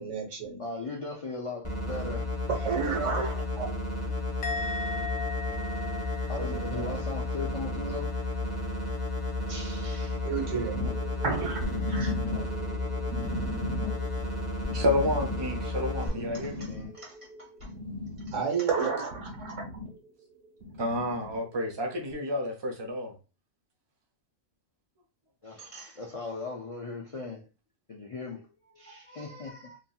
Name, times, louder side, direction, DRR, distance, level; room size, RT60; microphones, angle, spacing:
voice 1, 0.0-0.6 2.5-3.7 6.4-7.0 10.1-10.8 11.2-12.1 18.3-19.6, right 5 dB, 90° right, 1.3 m, -31 dB
voice 2, 0.6-2.3 6.3-8.1 9.5-10.2 12.3-12.5 16.0-17.7 25.4-27.4 27.9-28.5 28.7-29.8, left 3 dB, 55° left, 0.3 m, -39 dB
sound 1, 1.6-16.1, left 2 dB, 15° left, 0.8 m, -32 dB
Musical instrument, 4.4-7.8 8.1-8.5, left 4 dB, 80° left, 0.9 m, -38 dB
sound 2, 10.7-18.6 18.9-19.9 20.6-21.4 22.1-22.2, left 1 dB, 60° right, 1.3 m, -37 dB
voice 3, 14.7-16.7 20.8-23.1, left 1 dB, 30° right, 0.6 m, -30 dB
2.9 x 2.7 x 2.3 m
omnidirectional pair, 1.2 m